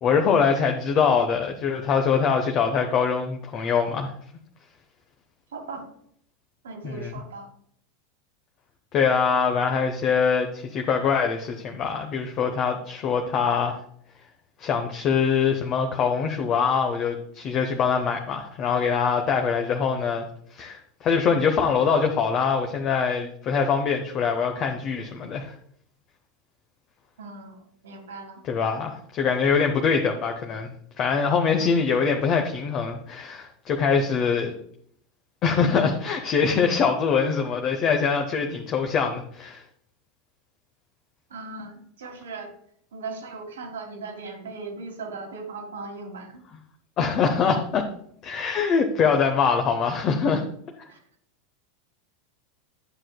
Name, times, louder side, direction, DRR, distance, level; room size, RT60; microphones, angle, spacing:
voice 1, 0.0-4.1 6.8-7.1 8.9-13.8 14.6-20.3 20.5-25.5 28.5-34.5 35.4-39.6 47.0-47.9 48.2-50.4, left 6 dB, 35° left, 4 dB, 0.9 m, -23 dB
voice 2, 5.5-5.9 6.6-7.5 27.2-28.4 41.3-42.5 42.9-46.4 50.9-51.0, right 3 dB, 65° right, 3 dB, 1.5 m, -38 dB
11.0 x 7.4 x 2.2 m, 0.66 s
figure-of-eight pair, 85°, 0 cm